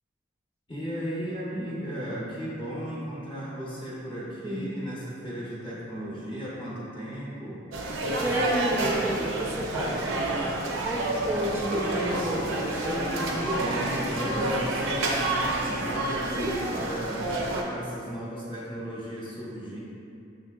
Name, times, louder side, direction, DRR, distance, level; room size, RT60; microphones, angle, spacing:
voice 1, 0.7-7.6 12.8-17.3 17.6-19.8, equal, 25° left, -8 dB, 0.7 m, -35 dB
voice 2, 4.4-4.7 8.2-10.1 10.8-12.6 16.3-16.6, equal, 10° right, -3 dB, 0.4 m, -30 dB
sound 1, 7.7-17.6, right 2 dB, 85° right, 0.5 m, -29 dB
6.3 x 2.7 x 2.3 m, 2.5 s
head